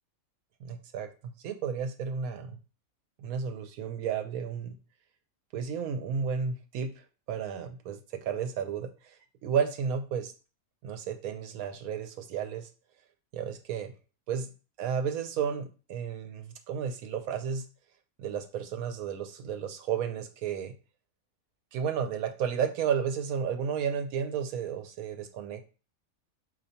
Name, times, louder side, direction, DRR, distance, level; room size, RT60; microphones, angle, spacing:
voice 1, 0.6-1.1 1.4-2.6 3.2-4.7 5.5-6.9 7.3-9.1 9.4-10.3 10.8-12.7 13.3-13.9 14.3-14.5 14.8-17.6 18.2-20.7 21.7-25.6, right 7 dB, 90° right, 6 dB, 1.1 m, -32 dB
4.4 x 2.7 x 2.7 m, 0.34 s
omnidirectional pair, 1.5 m